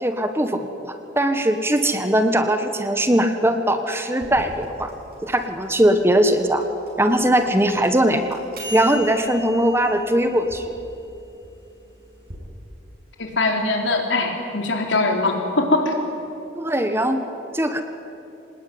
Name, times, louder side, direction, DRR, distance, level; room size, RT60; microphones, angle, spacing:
voice 1, 0.0-4.9 5.2-6.6 7.0-8.4 8.7-10.6 16.6-17.3 17.5-17.8, right 1 dB, 15° right, 7 dB, 1.3 m, -20 dB
sound 1, 4.2-12.4, left 2 dB, 55° right, 7.0 m, -39 dB
voice 2, 13.2-16.0, left 2 dB, 85° left, 2 dB, 3.7 m, -22 dB
25.0 x 19.5 x 9.4 m, 2.9 s
head